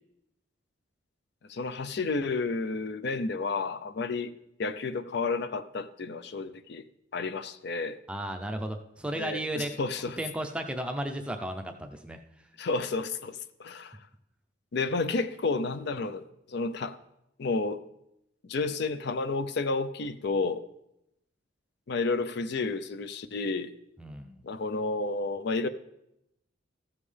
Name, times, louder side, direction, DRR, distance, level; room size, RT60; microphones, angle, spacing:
voice 1, 1.5-4.3 4.6-6.8 7.1-8.0 9.2-10.2 12.6-14.0 14.7-17.0 17.4-17.8 18.4-20.6 21.9-23.7 24.4-25.7, left 3 dB, 55° left, 12 dB, 0.4 m, -31 dB
voice 2, 8.1-9.7 10.2-12.2 24.0-24.4, right 1 dB, 5° right, 4 dB, 0.5 m, -34 dB
14.5 x 7.3 x 3.3 m, 0.82 s
head